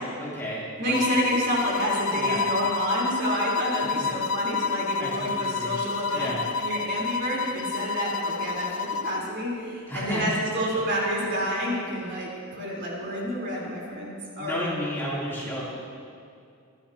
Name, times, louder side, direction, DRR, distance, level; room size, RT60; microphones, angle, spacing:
voice 1, 0.2-1.1 2.1-2.4 4.0-4.1 5.0-5.8 6.1-6.4 9.9-10.2 14.4-15.7, equal, 10° left, -8 dB, 3.1 m, -32 dB
voice 2, 0.8-14.7, equal, 55° right, -4 dB, 3.8 m, -29 dB
sound 1, 0.9-9.3, left 5 dB, 60° left, 0.5 m, -29 dB
24.5 x 12.0 x 2.9 m, 2.4 s
head